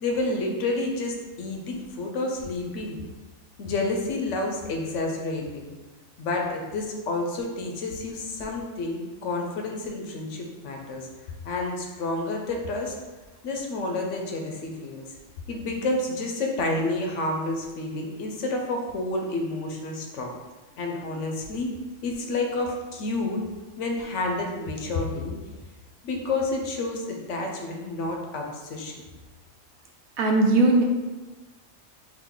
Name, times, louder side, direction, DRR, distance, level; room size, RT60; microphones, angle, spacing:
voice 1, 0.0-3.0 3.6-5.7 6.2-11.1 11.4-13.0 13.4-15.1 15.5-20.3 20.8-21.7 22.0-23.4 23.8-25.4 26.0-29.0, left 2 dB, 70° left, 1 dB, 0.9 m, -29 dB
voice 2, 30.2-30.8, right 2 dB, 80° right, 2 dB, 1.1 m, -19 dB
3.8 x 2.5 x 3.6 m, 1.2 s
omnidirectional pair, 1.4 m